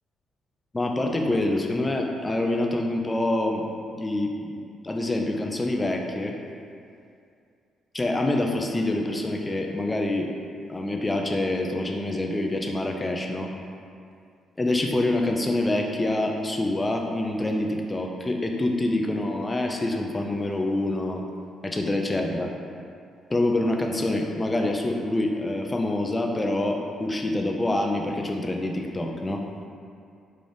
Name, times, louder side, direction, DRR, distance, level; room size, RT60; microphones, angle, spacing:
voice 1, 0.7-3.6 4.0-4.5 4.8-6.4 7.9-10.3 10.7-13.5 14.6-21.2 21.6-22.5 23.3-29.4, left 1 dB, 20° left, 2 dB, 0.4 m, -26 dB
3.9 x 2.4 x 3.4 m, 2.4 s
cardioid pair, 90°, 0 cm